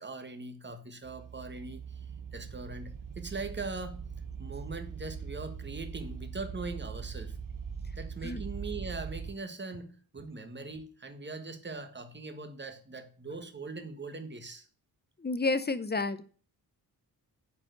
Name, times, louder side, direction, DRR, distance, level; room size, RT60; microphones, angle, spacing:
voice 1, 0.0-4.0 4.4-7.4 7.9-14.7, right 3 dB, 25° right, 8 dB, 1.6 m, -41 dB
sound 1, 1.0-9.3, right 6 dB, 50° right, 0.8 m, -41 dB
voice 2, 15.2-16.2, left 3 dB, 25° left, 13 dB, 0.8 m, -30 dB
8.4 x 5.0 x 6.6 m, 0.41 s
wide cardioid pair, 95°, 41 cm